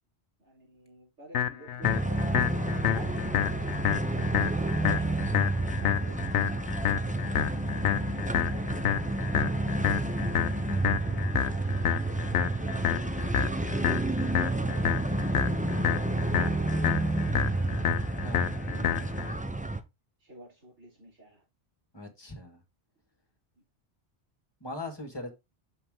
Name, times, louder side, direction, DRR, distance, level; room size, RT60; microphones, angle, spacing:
voice 1, 0.4-8.8 9.3-14.5 15.3-17.9 18.6-19.7 20.2-21.4 23.6-23.7, equal, 85° right, 3.9 m, -52 dB
sound 1, 1.3-19.3, left 10 dB, 75° left, 0.9 m, -30 dB
sound 2, 1.8-19.8, right 2 dB, 10° right, 0.5 m, -30 dB
voice 2, 18.2-18.6 21.9-22.6 24.6-25.3, left 2 dB, 20° left, 1.8 m, -40 dB
6.6 x 5.7 x 3.7 m
omnidirectional pair, 1.2 m